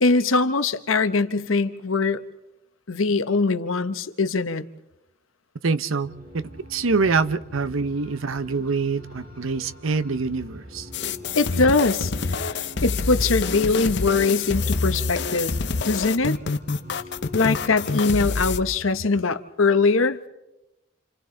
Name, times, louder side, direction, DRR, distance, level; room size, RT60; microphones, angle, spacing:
voice 1, 0.0-2.2 2.9-4.7 11.4-15.6 15.8-16.4 17.3-20.2, left 3 dB, 80° left, 1.0 m, -22 dB
voice 2, 5.6-6.4 6.7-10.9, right 4 dB, 80° right, 0.8 m, -25 dB
sound 1, 6.0-18.4, left 1 dB, 45° right, 5.6 m, -44 dB
sound 2, 10.9-18.6, left 4 dB, 55° left, 0.8 m, -26 dB
30.0 x 27.5 x 3.9 m
head